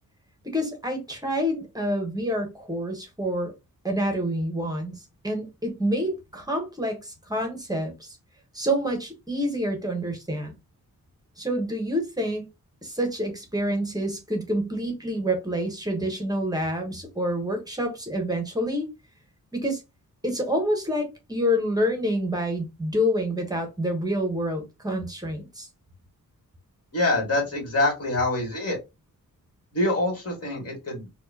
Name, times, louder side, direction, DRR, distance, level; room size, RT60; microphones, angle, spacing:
voice 1, 0.5-3.5 3.8-8.2 8.5-10.5 11.4-12.5 12.8-18.9 19.5-19.8 20.2-25.7, equal, 10° right, 1.0 m, -27 dB
voice 2, 26.9-28.8 29.7-31.1, left 2 dB, 40° left, 2.0 m, -25 dB
4.4 x 2.4 x 2.7 m
wide cardioid pair, 150°, 36 cm